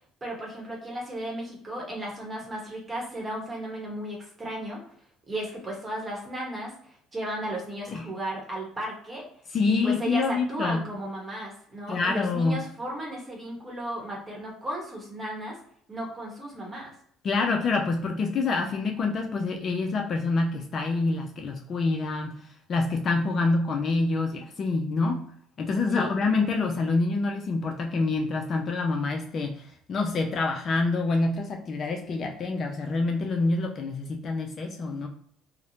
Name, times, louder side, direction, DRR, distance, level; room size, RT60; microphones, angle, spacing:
voice 1, 0.2-4.8 5.3-9.3 9.7-15.6 15.9-16.9 25.9-26.1, right 1 dB, 20° right, -2 dB, 0.9 m, -35 dB
voice 2, 9.5-10.9 11.9-12.7 17.2-22.3 22.7-25.2 25.6-35.1, left 3 dB, 40° left, 3 dB, 0.3 m, -26 dB
2.5 x 2.0 x 2.8 m, 0.64 s
cardioid pair, 135°, 0 cm